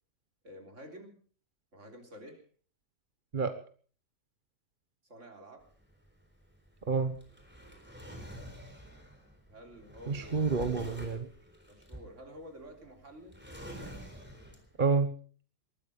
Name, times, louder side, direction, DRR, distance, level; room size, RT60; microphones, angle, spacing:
voice 1, 0.4-1.2 1.7-2.4 5.1-5.6 9.5-10.6 11.7-13.4, equal, 50° right, 3 dB, 3.8 m, -50 dB
Drawer open or close, 5.6-14.9, equal, 5° right, 3.9 m, -48 dB
voice 2, 6.9-7.2 10.1-11.3 14.8-15.1, right 4 dB, 35° right, 9 dB, 1.1 m, -29 dB
20.0 x 13.5 x 5.2 m, 0.43 s
omnidirectional pair, 1.6 m